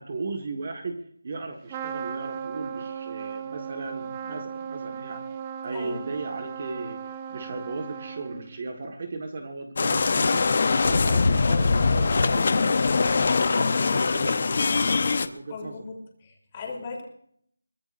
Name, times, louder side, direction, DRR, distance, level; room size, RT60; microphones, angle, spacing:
voice 1, 0.0-5.2 5.6-13.3 13.5-15.9, right 3 dB, 30° right, 5 dB, 1.6 m, -37 dB
Trumpet, 1.7-8.6, right 7 dB, 15° right, 0.8 m, -36 dB
voice 2, 5.7-6.1 15.5-17.0, left 4 dB, 20° left, -1 dB, 3.5 m, -38 dB
sound 1, 9.8-15.3, left 4 dB, 35° left, 0.9 m, -22 dB
23.5 x 19.5 x 2.6 m, 0.66 s
figure-of-eight pair, 175°, 0 cm